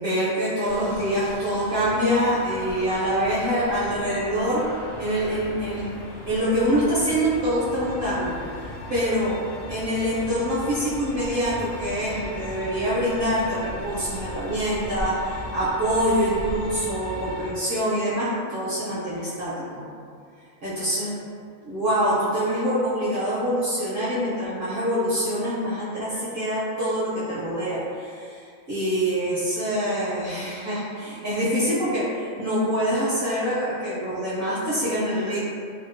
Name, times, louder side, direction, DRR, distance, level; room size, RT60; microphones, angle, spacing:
voice 1, 0.0-4.6 5.0-5.9 6.3-9.4 9.7-19.8 20.6-21.1 21.6-35.4, equal, 55° right, -10 dB, 0.6 m, -25 dB
Bullet train leaving station, 0.6-17.5, equal, 60° left, 0.7 m, -37 dB
2.7 x 2.2 x 2.5 m, 2.3 s
omnidirectional pair, 1.3 m